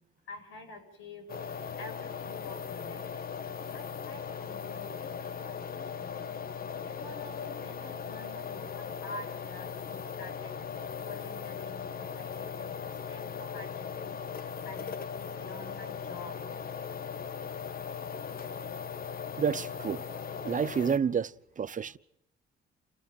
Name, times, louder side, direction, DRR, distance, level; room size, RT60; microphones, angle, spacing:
voice 1, 0.3-3.3 3.7-6.2 6.8-10.5 11.0-14.2 14.6-16.4, left 2 dB, 85° left, 7.9 m, -48 dB
sound 1, 1.3-21.0, left 7 dB, 50° left, 1.4 m, -39 dB
voice 2, 19.4-20.0 20.4-22.0, right 7 dB, 40° right, 0.9 m, -29 dB
29.0 x 16.0 x 9.1 m
cardioid pair, 90°, 20 cm